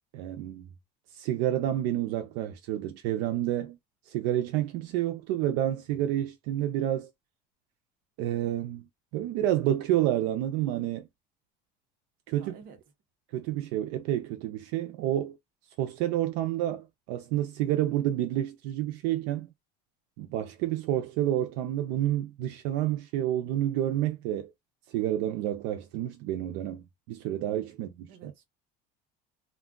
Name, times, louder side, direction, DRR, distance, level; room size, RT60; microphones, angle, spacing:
voice 1, 0.1-0.7 1.1-3.8 4.1-7.1 8.2-8.9 9.1-11.1 12.3-12.5 13.3-15.4 15.8-19.5 20.2-24.5 24.9-28.3, right 12 dB, 75° right, 0.5 m, -29 dB
voice 2, 12.3-12.8 28.1-28.5, right 6 dB, 50° right, 0.8 m, -50 dB
2.3 x 2.2 x 3.6 m
cardioid pair, 170°, 19 cm